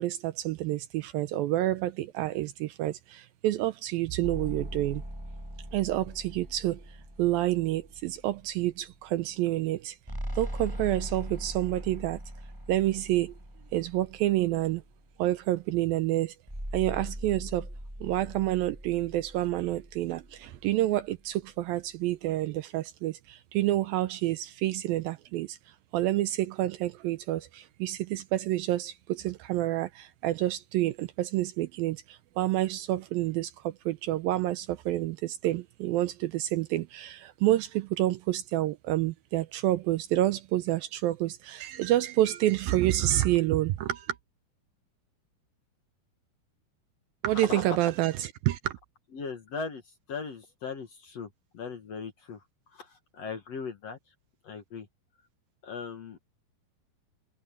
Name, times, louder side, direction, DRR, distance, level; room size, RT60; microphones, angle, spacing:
voice 1, 0.0-5.0 5.7-10.0 10.4-12.2 12.7-13.3 13.7-14.8 15.2-16.4 16.7-17.7 18.0-25.6 25.9-44.2 47.2-48.8, right 15 dB, 80° right, 2.2 m, -28 dB
sound 1, 4.2-8.7 10.1-14.9 16.5-20.8, equal, 5° right, 7.2 m, -41 dB
voice 2, 47.3-47.8 49.1-49.8 50.1-52.4 52.7-54.0 54.4-54.9 55.6-56.2, left 5 dB, 55° left, 2.1 m, -38 dB
omnidirectional pair, 4.6 m